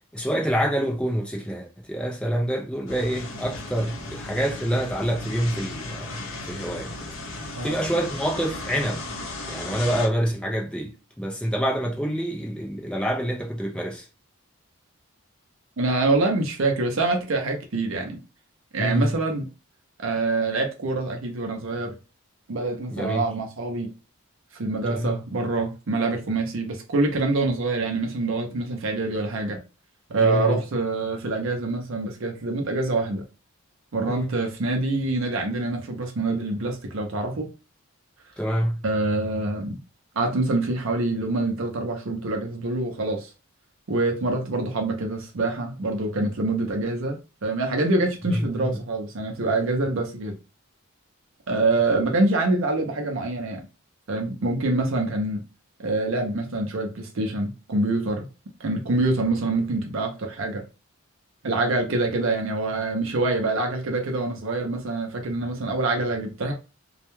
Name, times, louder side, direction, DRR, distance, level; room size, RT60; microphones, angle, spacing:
voice 1, 0.1-6.9 7.6-9.1 9.5-14.1 18.8-19.2 22.9-23.3 24.8-25.2 30.2-30.6 34.1-34.3 38.4-38.8 48.3-48.8, equal, 5° left, 0.4 m, -27 dB
sound 1, 2.9-10.1, left 2 dB, 65° left, 0.6 m, -36 dB
voice 2, 15.8-18.2 18.7-19.5 20.0-21.9 22.5-23.9 24.6-29.6 30.1-33.2 33.9-37.5 38.8-39.8 40.2-43.3 43.9-50.4 51.5-53.6 54.1-55.4 55.8-58.3 58.6-60.6 61.4-66.5, right 2 dB, 65° right, 0.6 m, -25 dB
2.3 x 2.1 x 2.9 m
head